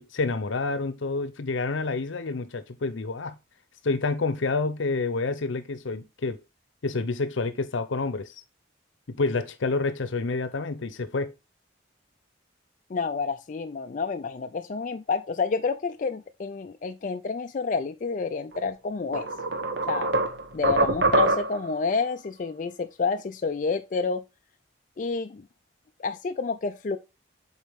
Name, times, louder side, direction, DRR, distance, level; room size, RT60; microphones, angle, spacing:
voice 1, 0.0-3.4 3.8-6.4 6.8-8.4 9.1-11.3, left 3 dB, 85° left, 0.7 m, -28 dB
voice 2, 12.9-19.3 19.9-20.1 20.5-24.2 25.0-25.4 26.0-27.0, left 4 dB, 40° left, 0.4 m, -29 dB
sound 1, 18.5-18.7 19.1-21.7, right 2 dB, 65° right, 1.0 m, -24 dB
7.1 x 4.1 x 3.5 m
head